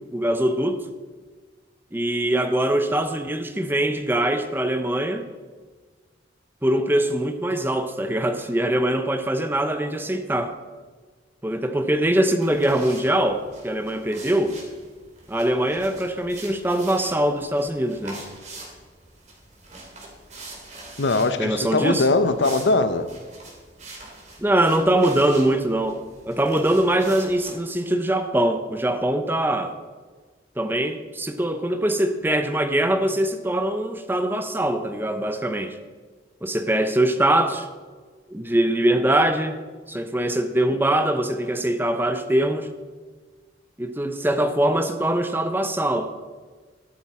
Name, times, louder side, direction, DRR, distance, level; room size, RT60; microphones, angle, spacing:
voice 1, 0.1-0.8 1.9-5.3 6.6-10.6 11.4-14.6 15.3-18.2 21.4-22.1 24.4-29.7 30.6-35.8 36.4-37.7 38.3-39.6 39.9-42.7 43.8-46.1, right 1 dB, 10° right, 8 dB, 0.8 m, -22 dB
sound 1, 12.4-27.6, right 2 dB, 40° right, 2.7 m, -44 dB
voice 2, 21.0-23.1, left 3 dB, 80° left, 10 dB, 0.9 m, -21 dB
13.5 x 12.0 x 4.3 m, 1.5 s
head